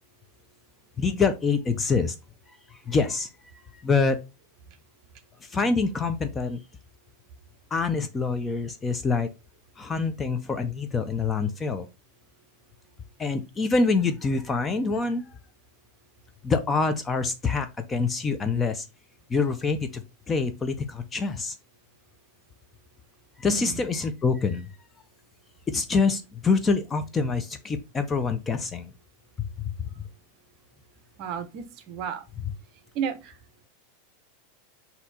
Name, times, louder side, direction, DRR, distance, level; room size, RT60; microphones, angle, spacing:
voice 1, 1.0-2.2 2.7-3.3 3.7-4.2 5.4-6.6 7.7-9.3 9.8-11.9 13.2-15.4 16.4-18.8 19.3-21.5 23.4-24.7 25.7-28.9 29.6-29.7, left 4 dB, 15° left, 0.4 m, -26 dB
voice 2, 23.5-23.8 31.2-32.2 32.9-33.4, right 7 dB, 40° right, 0.7 m, -33 dB
4.2 x 2.7 x 4.0 m
supercardioid pair, 160°, 0 cm